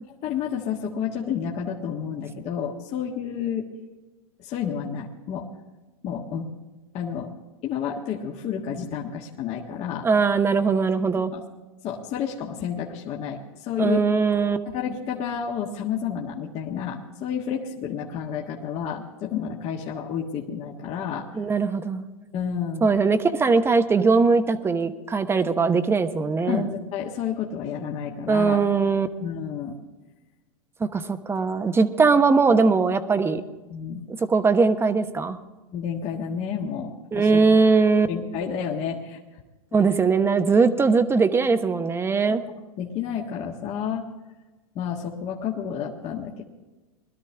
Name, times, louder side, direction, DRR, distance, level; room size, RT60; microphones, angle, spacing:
voice 1, 0.1-3.7 4.4-5.5 6.0-6.5 6.9-7.3 7.6-10.1 11.1-11.4 11.8-14.0 14.6-21.3 22.3-22.9 26.5-28.6 29.2-29.8 31.8-31.9 33.7-34.0 35.7-37.6 38.1-39.2 42.3-42.4 42.8-44.1 44.7-46.4, left 8 dB, 40° left, -1 dB, 1.6 m, -30 dB
voice 2, 10.0-11.3 13.8-14.6 21.4-22.0 22.8-26.7 28.3-29.1 30.8-33.4 34.2-35.4 37.1-38.1 39.7-42.4, right 4 dB, 15° right, 9 dB, 0.9 m, -20 dB
21.5 x 12.5 x 3.5 m, 1.2 s
hypercardioid pair, 115°, 17 cm